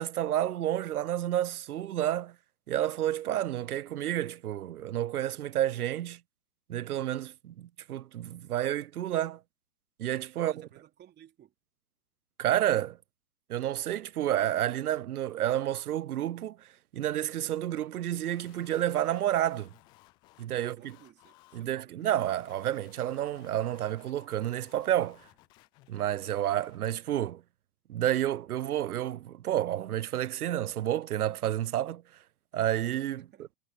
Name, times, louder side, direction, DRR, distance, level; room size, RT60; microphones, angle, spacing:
voice 1, 0.0-2.4 2.7-6.2 6.7-9.4 10.0-10.7 12.4-13.0 13.5-16.7 16.9-19.7 20.4-21.0 21.5-25.2 25.9-27.4 27.9-32.0 32.5-33.5, right 12 dB, 75° right, 0.7 m, -30 dB
voice 2, 10.4-11.5 20.5-22.0 33.3-33.5, right 11 dB, 20° right, 3.5 m, -55 dB
sound 1, 18.1-26.8, left 19 dB, 10° left, 0.4 m, -59 dB
hypercardioid pair, 120°, 44 cm